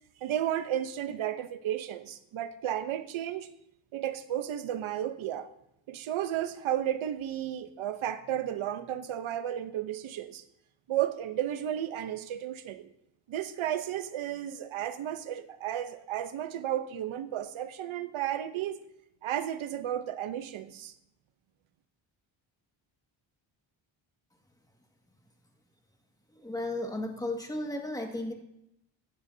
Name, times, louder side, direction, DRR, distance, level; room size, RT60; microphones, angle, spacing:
voice 1, 0.2-3.5 3.9-5.5 5.9-10.4 10.9-12.9 13.3-18.8 19.2-20.9, right 11 dB, 80° right, 1.0 m, -33 dB
voice 2, 26.3-28.3, left 1 dB, 10° left, 1.9 m, -34 dB
14.5 x 10.0 x 2.8 m
cardioid pair, 80°, 47 cm